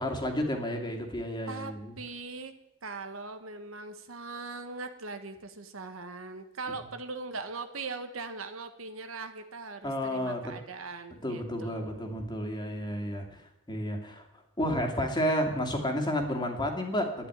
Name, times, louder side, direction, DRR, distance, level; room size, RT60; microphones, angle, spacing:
voice 1, 0.0-1.9 9.8-10.5 11.2-14.3 14.6-17.3, equal, 20° left, 3 dB, 2.5 m, -31 dB
voice 2, 1.5-2.5 2.8-12.3, right 3 dB, 75° right, 8 dB, 1.4 m, -40 dB
11.5 x 10.5 x 9.6 m, 0.83 s
head